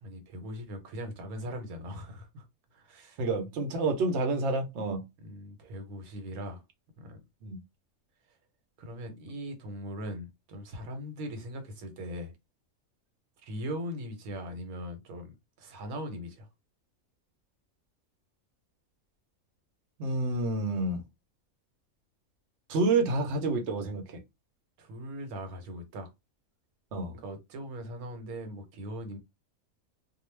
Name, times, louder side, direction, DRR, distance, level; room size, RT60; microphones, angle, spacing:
voice 1, 0.0-2.4 2.7-3.2 5.2-6.6 7.0-7.2 8.8-12.3 13.4-16.5 24.8-26.1 27.1-29.2, equal, 85° right, 1.2 m, -40 dB
voice 2, 3.2-5.0 7.4-7.6 20.0-21.0 22.7-24.0 26.9-27.1, right 3 dB, 60° right, 0.9 m, -28 dB
2.4 x 2.2 x 3.1 m
omnidirectional pair, 1.5 m